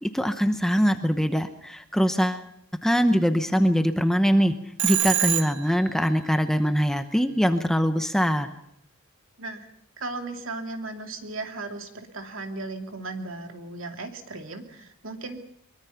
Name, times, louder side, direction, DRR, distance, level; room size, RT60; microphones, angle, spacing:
voice 1, 0.0-2.4 2.8-4.5 4.8-8.5, equal, ahead, 8 dB, 0.8 m, -22 dB
Telephone, 4.8-5.9, right 13 dB, 90° right, 1.6 m, -25 dB
voice 2, 10.0-15.4, right 3 dB, 60° right, 4 dB, 2.6 m, -36 dB
23.0 x 23.0 x 5.8 m, 0.70 s
head